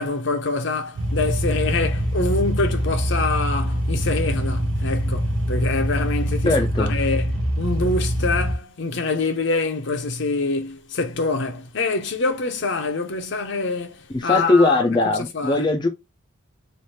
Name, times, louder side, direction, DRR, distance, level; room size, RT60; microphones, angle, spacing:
voice 1, 0.0-7.2 7.6-15.7, left 3 dB, 60° left, 0.7 m, -25 dB
sound 1, 1.0-8.5, equal, 75° right, 0.8 m, -24 dB
voice 2, 6.4-6.9 14.1-15.9, left 2 dB, 20° left, 0.4 m, -19 dB
3.2 x 2.5 x 4.2 m
head